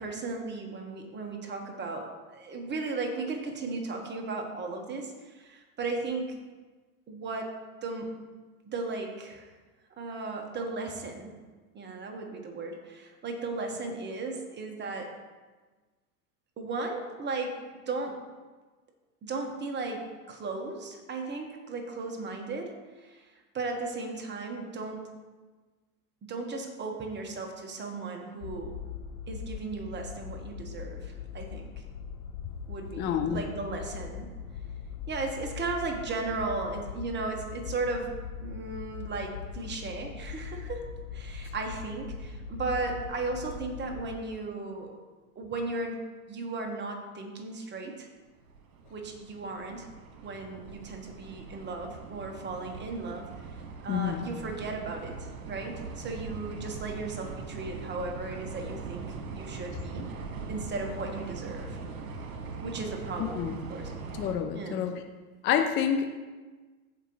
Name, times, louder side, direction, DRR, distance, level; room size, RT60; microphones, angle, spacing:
voice 1, 0.0-6.3 7.1-7.5 7.8-8.1 8.7-9.5 10.0-11.3 11.7-15.1 16.6-17.6 17.9-18.2 19.2-22.7 23.0-25.1 26.2-28.8 29.3-31.7 32.7-34.2 35.1-38.1 38.4-40.9 41.1-44.9 45.3-46.0 46.3-48.1 48.9-49.9 50.2-53.3 53.8-59.1 59.3-60.1 60.5-61.8 62.6-63.9 64.5-64.8, right 3 dB, 25° right, 2 dB, 1.4 m, -36 dB
sound 1, 28.4-44.2, left 7 dB, 65° left, 0.9 m, -41 dB
voice 2, 33.0-33.4 53.9-54.3 63.3-63.6 64.2-65.0 65.4-66.1, left 8 dB, 25° left, 6 dB, 0.5 m, -28 dB
sound 2, 48.4-64.4, right 4 dB, 65° right, 1.6 m, -41 dB
15.5 x 5.1 x 3.1 m, 1.3 s
hypercardioid pair, 100°, 44 cm